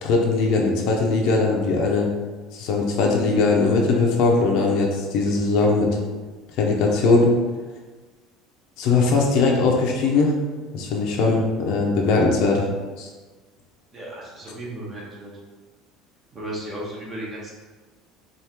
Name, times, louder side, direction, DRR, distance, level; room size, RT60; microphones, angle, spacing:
voice 1, 0.0-2.1 2.5-5.9 6.6-7.3 8.8-10.3 10.7-12.7 13.0-13.1, left 3 dB, 65° left, 0 dB, 0.7 m, -20 dB
voice 2, 13.9-15.3 16.3-17.5, right 1 dB, 25° right, -4 dB, 1.1 m, -34 dB
4.9 x 2.5 x 2.9 m, 1.3 s
cardioid pair, 150°, 0 cm